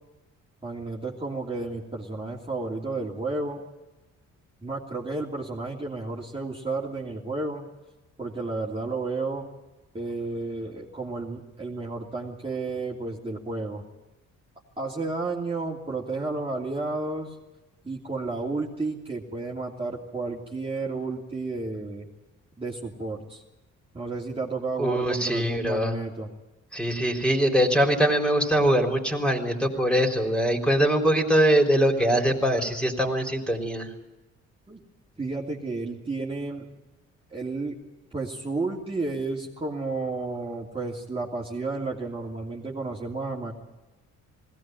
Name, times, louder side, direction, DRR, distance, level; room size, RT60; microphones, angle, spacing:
voice 1, 0.6-3.6 4.6-7.7 8.2-9.5 9.9-13.8 14.8-17.3 17.8-22.1 22.6-23.4 23.9-26.3 34.7-34.8 35.2-36.6 37.3-37.8 38.1-43.5, right 3 dB, 20° right, -4 dB, 3.0 m, -32 dB
voice 2, 24.8-26.0 26.7-33.9, right 1 dB, 5° left, 2 dB, 4.0 m, -22 dB
20.0 x 17.5 x 9.3 m, 1.1 s
cardioid pair, 90°, 30 cm